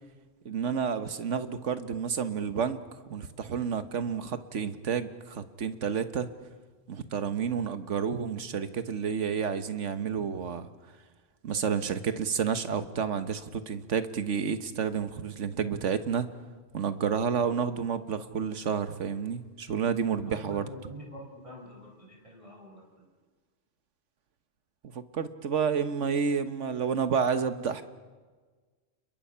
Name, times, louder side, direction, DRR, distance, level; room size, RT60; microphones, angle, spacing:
voice 1, 0.4-2.8 3.1-6.3 6.9-10.7 11.4-16.3 16.7-20.7 24.8-27.8, right 6 dB, 70° right, 11 dB, 1.5 m, -30 dB
voice 2, 20.2-23.1, equal, 25° right, -1 dB, 5.0 m, -46 dB
30.0 x 22.0 x 5.7 m, 1.4 s
omnidirectional pair, 1.3 m